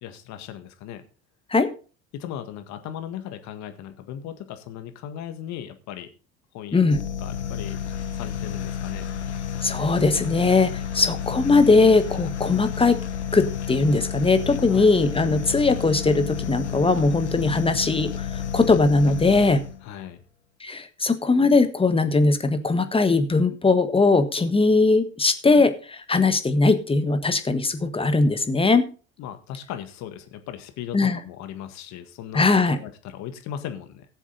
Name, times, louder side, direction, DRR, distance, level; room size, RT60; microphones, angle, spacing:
voice 1, 0.0-1.0 2.1-6.1 6.5-6.8 7.2-7.8 8.1-9.1 14.7-14.9 15.2-15.3 17.5-17.6 19.8-20.2 29.2-32.5 32.7-34.1, left 10 dB, 55° left, 9 dB, 1.7 m, -37 dB
voice 2, 6.7-7.0 9.6-13.0 13.3-19.6 20.6-28.9 30.9-31.2 32.3-32.8, left 3 dB, 15° left, 10 dB, 1.5 m, -20 dB
sound 1, 6.9-19.9, left 8 dB, 85° left, 0.8 m, -31 dB
17.0 x 7.2 x 3.9 m, 0.37 s
figure-of-eight pair, 65°, 33 cm